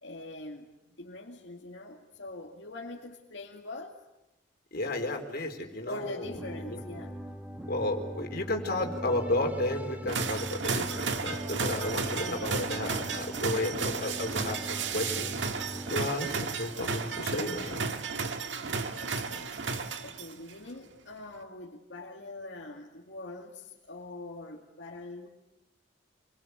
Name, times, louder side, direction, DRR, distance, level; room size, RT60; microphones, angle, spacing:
voice 1, 0.0-0.7 1.0-4.0 5.9-7.2 18.4-19.5 20.0-25.3, left 2 dB, 80° left, -1 dB, 2.4 m, -43 dB
voice 2, 4.7-6.3 6.7-6.8 7.7-15.4 15.9-17.9, left 2 dB, 60° left, 3 dB, 4.2 m, -33 dB
sound 1, 6.2-16.1, equal, 10° right, 1.7 m, -40 dB
sound 2, 10.1-20.5, right 5 dB, 80° right, 1.7 m, -33 dB
27.5 x 23.5 x 8.2 m, 0.95 s
head